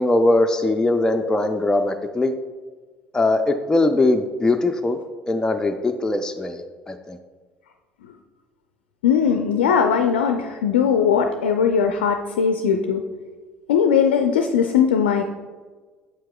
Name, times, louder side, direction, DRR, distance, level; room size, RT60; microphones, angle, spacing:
voice 1, 0.0-2.3 3.1-5.0 5.3-7.2, left 2 dB, 10° left, 5 dB, 0.4 m, -21 dB
voice 2, 9.0-13.0 13.7-15.2, left 7 dB, 70° left, 6 dB, 0.4 m, -19 dB
7.8 x 7.4 x 2.2 m, 1.4 s
figure-of-eight pair, 60°, 6 cm